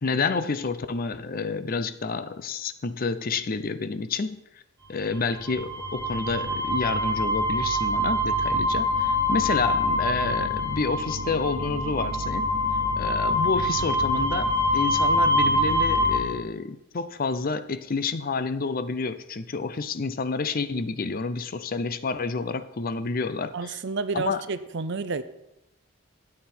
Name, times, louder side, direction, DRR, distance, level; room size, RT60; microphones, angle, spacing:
voice 1, 0.0-4.4 4.9-12.6 13.0-23.8 24.1-24.4, left 4 dB, 45° left, 13 dB, 0.5 m, -29 dB
sound 1, 5.2-16.2, left 1 dB, 15° right, 3.8 m, -25 dB
voice 2, 23.5-25.2, right 4 dB, 55° right, 13 dB, 0.6 m, -30 dB
13.0 x 8.8 x 4.4 m, 0.87 s
head